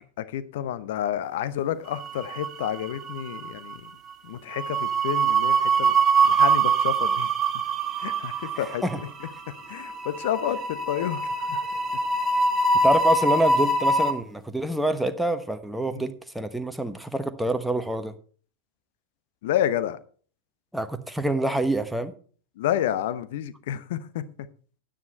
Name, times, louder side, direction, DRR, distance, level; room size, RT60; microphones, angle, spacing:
voice 1, 0.2-3.9 4.2-5.9 6.2-7.3 8.0-9.1 9.7-11.6 15.9-16.0 19.4-20.0 22.6-24.5, left 11 dB, 55° left, 0.9 m, -30 dB
sound 1, 2.1-2.8 3.1-3.4 4.6-14.1, right 3 dB, 25° right, 1.9 m, -23 dB
voice 2, 8.6-9.0 12.8-18.1 20.7-22.1, right 1 dB, ahead, 1.1 m, -26 dB
10.0 x 9.5 x 4.3 m
figure-of-eight pair, 90°, 0 cm